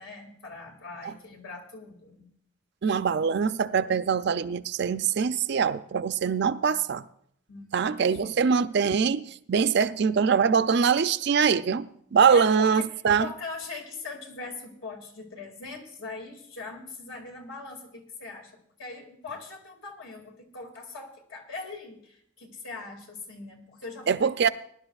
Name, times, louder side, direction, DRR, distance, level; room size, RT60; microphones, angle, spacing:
voice 1, 0.0-2.2 7.5-8.4 12.3-24.3, left 4 dB, 75° left, 2.3 m, -41 dB
voice 2, 2.8-7.0 7.7-9.2 9.5-13.3 24.1-24.5, right 6 dB, 55° right, 0.4 m, -23 dB
21.5 x 11.0 x 2.4 m
head